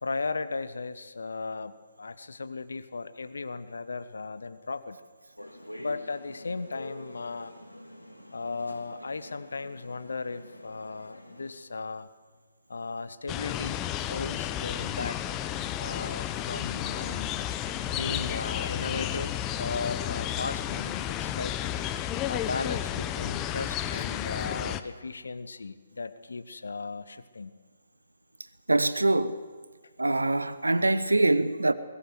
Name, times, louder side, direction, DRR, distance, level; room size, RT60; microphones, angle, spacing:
voice 1, 0.0-5.0 5.8-7.5 8.3-12.1 12.7-15.2 15.8-17.4 17.8-21.5 22.3-27.5, left 4 dB, 60° left, 1.2 m, -36 dB
sound 1, 5.4-11.5, left 1 dB, 85° left, 3.3 m, -46 dB
sound 2, 13.3-24.8, left 11 dB, 20° left, 0.8 m, -32 dB
voice 2, 28.7-29.3 30.0-31.7, right 2 dB, 75° right, 1.1 m, -24 dB
22.0 x 18.5 x 7.9 m
figure-of-eight pair, 135°, 0 cm